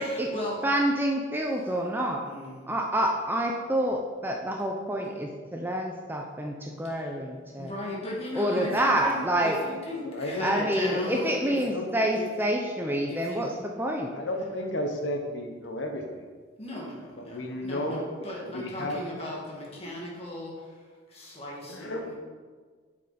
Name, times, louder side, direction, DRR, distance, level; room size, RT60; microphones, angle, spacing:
voice 1, 0.0-0.7 2.2-2.7 6.8-7.2 7.6-11.6 12.2-12.3 13.1-13.5 16.6-22.1, left 1 dB, 30° left, -4 dB, 2.1 m, -37 dB
voice 2, 0.6-2.2 2.7-7.7 8.4-9.6 10.4-13.5 13.8-14.1, right 1 dB, 10° right, 1 dB, 0.6 m, -27 dB
voice 3, 10.0-11.2 11.6-12.2 14.1-16.3 17.2-19.0 21.7-22.1, left 1 dB, 75° left, 3 dB, 1.1 m, -33 dB
8.5 x 6.6 x 4.2 m, 1.5 s
head